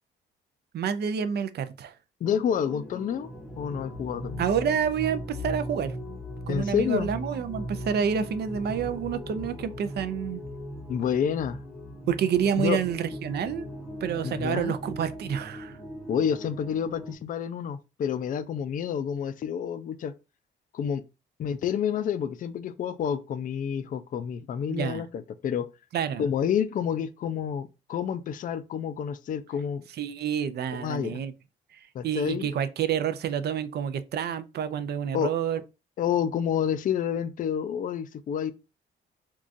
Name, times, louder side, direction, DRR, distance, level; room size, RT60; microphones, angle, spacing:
voice 1, 0.7-1.9 4.4-5.9 6.5-10.4 12.1-13.7 14.0-15.8 24.7-25.0 25.9-26.2 30.0-31.3 31.7-35.6, right 8 dB, 55° right, 0.4 m, -28 dB
voice 2, 2.2-3.3 3.6-4.5 6.5-7.1 10.9-11.6 12.6-12.8 14.2-14.7 16.1-20.1 20.7-21.0 21.4-25.7 26.2-29.8 30.7-31.2 31.9-32.5 35.1-35.3 36.0-38.5, left 8 dB, 45° left, 0.4 m, -29 dB
sound 1, 2.3-17.2, equal, ahead, 0.8 m, -39 dB
3.7 x 2.3 x 2.5 m
cardioid pair, 90°, 20 cm